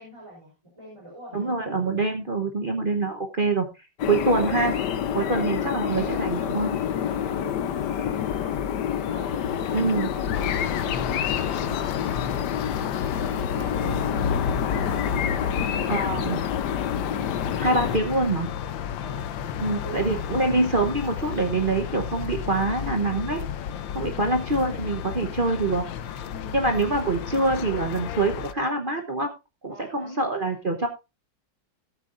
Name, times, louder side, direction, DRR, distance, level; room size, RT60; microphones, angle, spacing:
voice 1, 0.0-1.5 4.4-4.5 5.3-6.3 7.1-8.6 9.1-12.5 13.1-14.3 14.7-16.4 19.0-20.1 24.0-24.4 26.3-26.9 29.7-30.2, right 1 dB, 15° right, -3 dB, 3.7 m, -44 dB
voice 2, 1.3-3.7 4.1-4.7 5.1-6.7 9.7-10.1 15.9-16.4 17.6-18.5 19.6-23.4 23.9-25.8 26.5-29.3 29.6-30.9, right 2 dB, 35° right, 4 dB, 0.9 m, -25 dB
sound 1, 4.0-18.0, left 8 dB, 70° left, 1.4 m, -28 dB
sound 2, 10.3-28.5, left 8 dB, 85° left, 1.5 m, -33 dB
16.5 x 8.2 x 2.5 m, 0.26 s
omnidirectional pair, 2.0 m